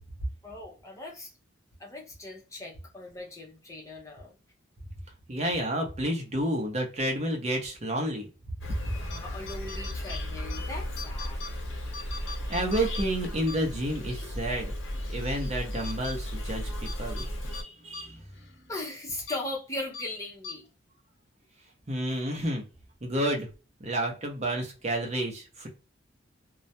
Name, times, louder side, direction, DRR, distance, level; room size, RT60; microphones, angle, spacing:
voice 1, 0.4-1.3 1.8-4.3 8.9-11.4 18.7-20.7, left 2 dB, 15° left, 0.5 m, -39 dB
voice 2, 5.3-8.3 12.5-14.7 15.1-16.7 17.0-18.2 21.9-22.6 23.0-23.5 23.8-25.7, right 1 dB, 35° right, 0.7 m, -30 dB
Insect, 8.6-17.6, equal, 85° left, 0.9 m, -35 dB
sound 1, 9.0-9.2 9.5-10.6 11.0-11.5 11.9-14.0 14.4-14.5 15.0-15.3 15.8-16.1 16.8-17.3 17.5-17.6 17.9-18.0 18.4-18.5 19.2-19.4 19.9-20.0 20.4-20.5, left 4 dB, 60° left, 0.5 m, -41 dB
2.3 x 2.1 x 2.6 m
head